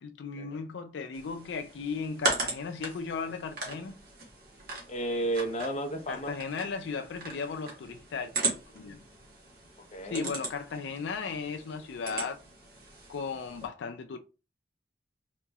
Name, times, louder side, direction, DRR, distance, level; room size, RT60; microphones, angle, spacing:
voice 1, 0.0-4.0 6.1-8.3 8.7-9.0 10.0-12.4 13.1-14.2, left 5 dB, 85° left, 0.4 m, -36 dB
sound 1, 1.1-13.7, right 3 dB, 55° right, 1.2 m, -38 dB
voice 2, 4.9-6.3 9.9-10.3, right 1 dB, 40° left, 0.6 m, -32 dB
3.9 x 2.9 x 2.3 m
head